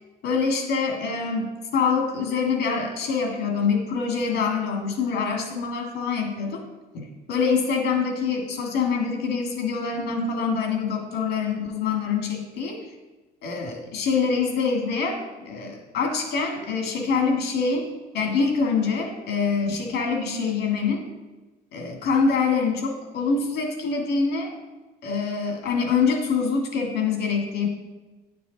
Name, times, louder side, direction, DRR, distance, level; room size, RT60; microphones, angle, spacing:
voice 1, 0.2-6.6 6.9-12.8 13.4-15.2 15.5-21.1 21.7-24.5 25.0-27.7, left 5 dB, 80° left, 2 dB, 1.8 m, -25 dB
9.8 x 6.8 x 3.9 m, 1.2 s
cardioid pair, 110°, 17 cm